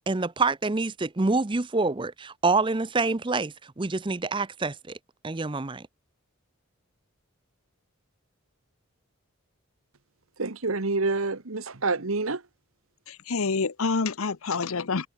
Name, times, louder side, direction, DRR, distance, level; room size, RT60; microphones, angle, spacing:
voice 1, 0.0-5.0 5.2-5.9, right 3 dB, 20° right, 0.6 m, -26 dB
voice 2, 10.4-12.4, right 3 dB, 75° right, 1.4 m, -27 dB
voice 3, 13.1-15.1, left 4 dB, 75° left, 0.8 m, -27 dB
head